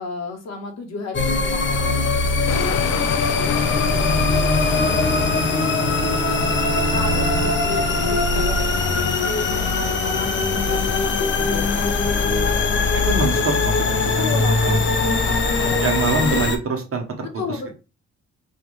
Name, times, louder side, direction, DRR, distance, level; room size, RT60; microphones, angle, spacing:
voice 1, 0.0-12.0 12.2-12.6 14.1-16.0 17.4-17.7, left 4 dB, 60° left, 3 dB, 1.2 m, -34 dB
sound 1, 1.1-16.6, left 3 dB, 40° left, 0.8 m, -21 dB
sound 2, 2.5-16.5, left 9 dB, 80° left, 0.5 m, -29 dB
Bowed string instrument, 4.5-9.4, right 4 dB, 15° right, 0.3 m, -31 dB
voice 2, 13.0-14.0 14.6-14.8 15.8-17.3, right 4 dB, 45° right, 2 dB, 1.1 m, -24 dB
4.4 x 2.5 x 3.1 m, 0.31 s
cardioid pair, 90°, 30 cm